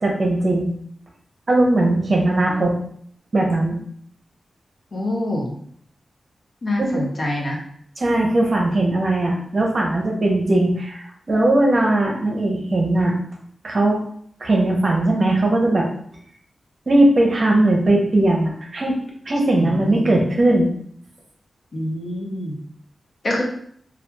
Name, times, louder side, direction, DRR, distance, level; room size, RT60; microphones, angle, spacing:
voice 1, 0.0-0.7 1.5-2.7 3.3-3.8 6.8-7.0 8.0-13.2 13.6-14.0 14.4-15.9 16.9-18.9 19.3-20.7, right 1 dB, 40° right, -1 dB, 0.6 m, -19 dB
voice 2, 4.9-5.5 6.6-7.6 19.6-20.2 21.7-22.6 23.2-23.4, left 1 dB, 50° left, -1 dB, 0.6 m, -25 dB
2.9 x 2.3 x 2.2 m, 0.63 s
wide cardioid pair, 130°, 0 cm